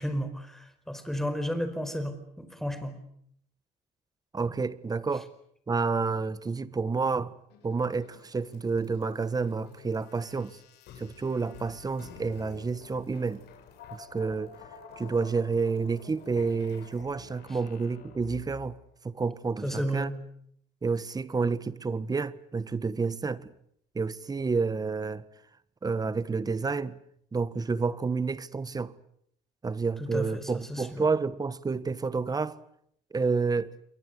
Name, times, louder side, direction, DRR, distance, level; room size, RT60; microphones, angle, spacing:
voice 1, 0.0-2.9 19.6-20.1 30.0-31.1, equal, ahead, 4.7 m, -33 dB
voice 2, 4.3-5.3 5.7-7.3 7.6-10.6 11.0-13.4 13.9-14.5 15.0-18.8 19.0-20.1 20.8-23.5 23.9-25.2 25.8-26.9 27.3-28.9 29.6-32.6 33.1-33.7, right 4 dB, 20° right, 1.4 m, -29 dB
sound 1, 7.5-18.8, left 7 dB, 80° left, 6.2 m, -50 dB
28.0 x 23.0 x 8.3 m
cardioid pair, 110°, 17 cm